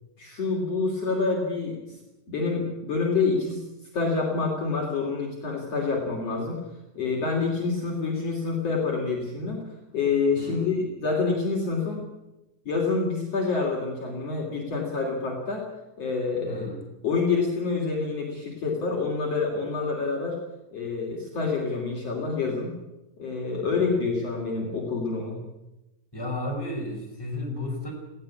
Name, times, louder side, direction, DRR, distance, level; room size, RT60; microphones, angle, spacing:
voice 1, 0.2-1.8 2.3-3.6 3.9-6.6 7.0-9.6 9.9-12.0 12.7-15.6 16.0-16.7 17.0-20.4 20.7-22.7 23.2-25.4, left 4 dB, 45° left, -1 dB, 3.9 m, -27 dB
voice 2, 10.4-10.7 16.5-16.8 23.7-24.0 26.1-27.9, left 1 dB, 5° left, 0 dB, 5.2 m, -33 dB
19.0 x 16.5 x 8.6 m, 0.96 s
omnidirectional pair, 4.1 m